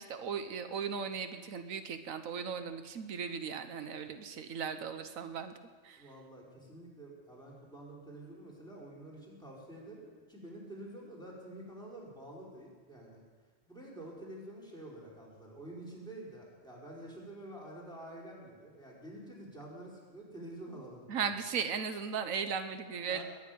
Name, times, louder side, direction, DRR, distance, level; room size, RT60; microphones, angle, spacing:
voice 1, 0.0-5.5 5.8-6.1 21.1-23.2, right 6 dB, 85° right, 8 dB, 1.4 m, -37 dB
voice 2, 6.0-13.2 13.7-21.2 23.1-23.2, right 1 dB, 5° left, -4 dB, 4.5 m, -48 dB
21.5 x 7.3 x 9.2 m, 1.5 s
omnidirectional pair, 1.4 m